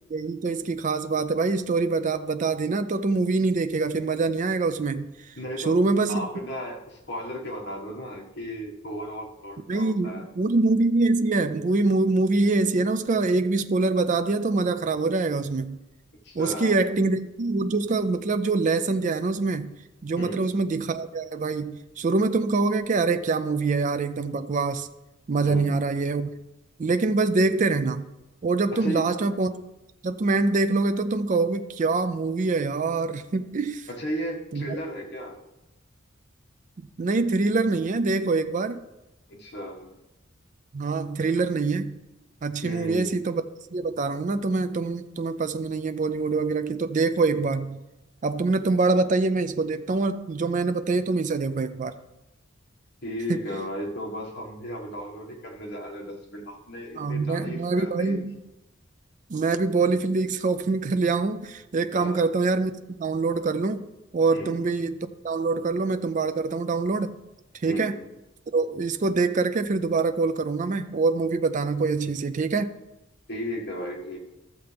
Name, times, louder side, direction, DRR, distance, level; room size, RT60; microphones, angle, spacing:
voice 1, 0.1-5.1 5.7-6.3 9.7-15.8 16.4-19.7 20.0-24.9 25.3-26.3 26.8-28.1 28.4-29.5 30.0-33.9 34.5-34.8 37.0-38.8 40.7-42.0 42.4-43.4 43.7-47.8 48.2-51.9 53.3-53.4 57.0-58.4 59.3-63.9 64.1-65.0 65.2-67.1 67.6-67.9 68.5-72.7, right 3 dB, 40° right, 0.4 m, -24 dB
voice 2, 5.4-5.8 6.1-10.3 16.2-16.7 20.2-20.5 25.4-25.7 28.7-29.1 33.9-35.4 39.3-39.9 42.6-43.2 53.0-58.2 61.9-62.3 64.3-64.6 67.6-68.0 73.3-74.2, equal, 55° left, 1.7 m, -35 dB
13.0 x 6.8 x 3.4 m
head